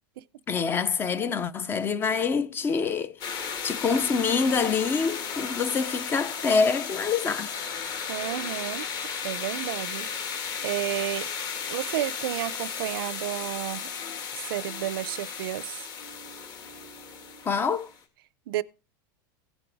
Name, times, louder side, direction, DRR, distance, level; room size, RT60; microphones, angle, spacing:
voice 1, 0.5-7.5 17.4-17.9, left 5 dB, 20° left, 0.5 m, -26 dB
sound 1, 3.2-18.0, left 6 dB, 35° left, 1.9 m, -35 dB
voice 2, 8.1-8.9 9.2-10.1 10.6-11.3 11.7-13.9 14.3-15.9 18.5-18.6, right 14 dB, 75° right, 0.5 m, -31 dB
16.5 x 7.1 x 3.5 m
supercardioid pair, 155°, 12 cm